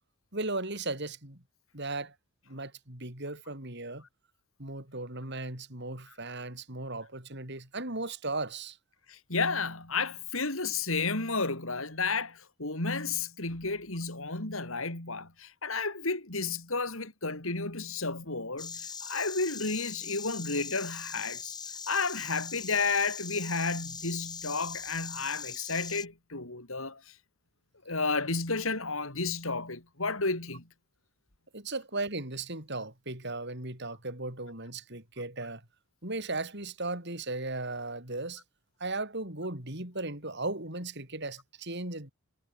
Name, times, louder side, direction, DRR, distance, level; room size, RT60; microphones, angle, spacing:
voice 1, 0.3-1.4 1.7-2.1 2.5-4.0 4.6-8.8 31.5-35.6 36.0-38.4 38.8-42.1, right 2 dB, 55° right, 6.4 m, -36 dB
voice 2, 9.1-21.5 21.9-27.0 27.9-30.6, left 4 dB, 70° left, 4.5 m, -32 dB
Insect, 18.6-26.0, left 6 dB, 20° left, 7.4 m, -41 dB
head